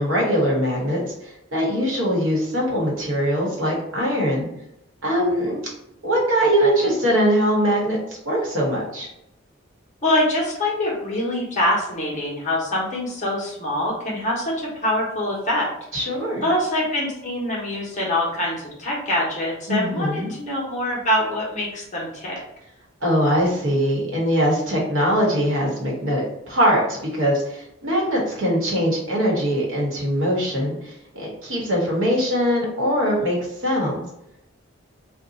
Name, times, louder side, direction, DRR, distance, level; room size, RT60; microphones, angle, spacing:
voice 1, 0.0-4.5 5.0-5.6 6.0-9.1 15.9-16.5 19.7-20.3 23.0-34.0, equal, 65° right, -3 dB, 1.1 m, -22 dB
voice 2, 10.0-15.7 16.4-22.4, left 1 dB, 35° left, -4 dB, 0.9 m, -24 dB
2.6 x 2.3 x 3.9 m, 0.82 s
head